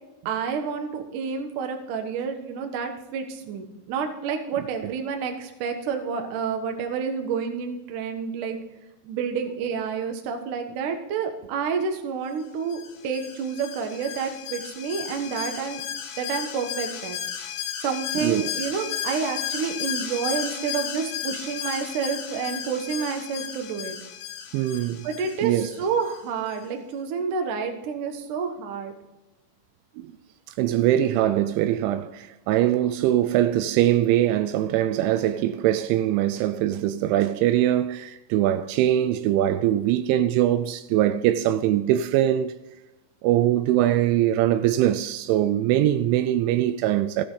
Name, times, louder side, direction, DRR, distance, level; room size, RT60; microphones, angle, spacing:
voice 1, 0.2-8.6 9.0-15.8 16.2-17.2 17.8-24.0 25.0-28.9, right 6 dB, 70° right, 2.0 m, -29 dB
Alarm, 12.7-26.2 26.5-26.6, left 9 dB, 75° left, 2.9 m, -34 dB
voice 2, 18.2-18.6 24.5-25.1 25.4-25.7 30.0-30.1 30.6-42.5 43.2-47.3, right 12 dB, 85° right, 2.8 m, -22 dB
16.0 x 8.7 x 3.9 m
omnidirectional pair, 5.5 m